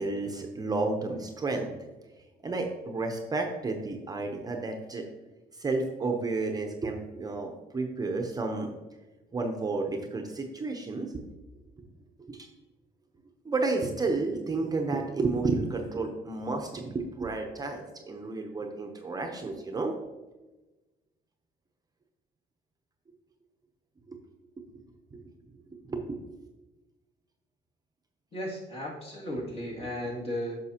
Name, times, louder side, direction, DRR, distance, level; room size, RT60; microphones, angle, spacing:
voice 1, 0.0-1.7 2.2-5.1 5.5-8.7 9.3-11.2 12.2-12.5 13.4-19.9 24.1-24.2 24.7-24.8 25.1-25.2 25.9-26.2 29.8-29.9, right 3 dB, 20° right, 3 dB, 0.8 m, -31 dB
voice 2, 28.3-30.6, equal, 35° left, -2 dB, 2.4 m, -35 dB
9.3 x 6.2 x 2.9 m, 1.1 s
cardioid pair, 110°, 17 cm